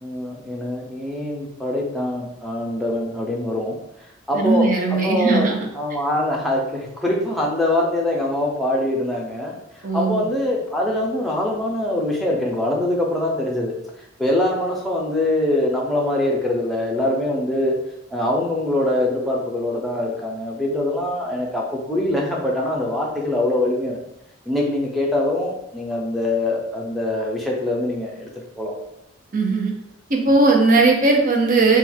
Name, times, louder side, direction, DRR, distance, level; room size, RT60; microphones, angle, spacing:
voice 1, 0.0-3.8 4.3-5.5 5.8-9.6 9.9-13.7 14.2-17.8 18.1-24.0 24.5-28.3 28.6-28.8, left 1 dB, ahead, -3 dB, 0.6 m, -23 dB
voice 2, 4.3-5.6 9.8-10.3 29.3-29.7 30.1-31.8, right 3 dB, 40° right, 1 dB, 0.6 m, -18 dB
3.8 x 2.3 x 4.4 m, 0.84 s
head